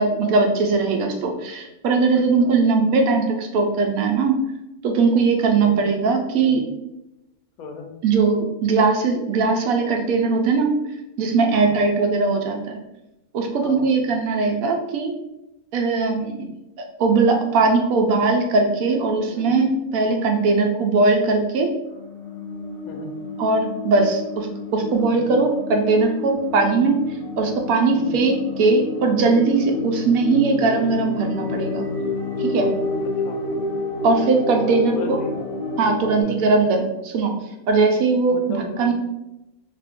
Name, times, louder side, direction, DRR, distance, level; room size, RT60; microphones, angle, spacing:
voice 1, 0.0-4.4 4.8-6.6 8.0-10.7 11.2-12.8 13.3-15.2 15.7-16.5 17.0-21.7 23.4-26.9 27.4-31.8 32.4-32.7 34.0-35.2 35.8-37.3 37.7-38.4 38.8-38.9, right 4 dB, 75° right, 3 dB, 1.0 m, -20 dB
voice 2, 2.1-2.5 5.5-5.9 6.4-6.7 7.6-7.9 11.5-11.8 13.6-13.9 19.3-19.6 22.8-23.2 25.0-25.4 27.9-28.2 33.2-33.4 34.7-35.3 36.2-36.5 38.3-38.8, left 4 dB, 80° left, 3 dB, 1.1 m, -36 dB
sound 1, 21.9-36.2, left 3 dB, 55° left, 0.7 m, -29 dB
2.8 x 2.5 x 3.5 m, 0.92 s
omnidirectional pair, 1.6 m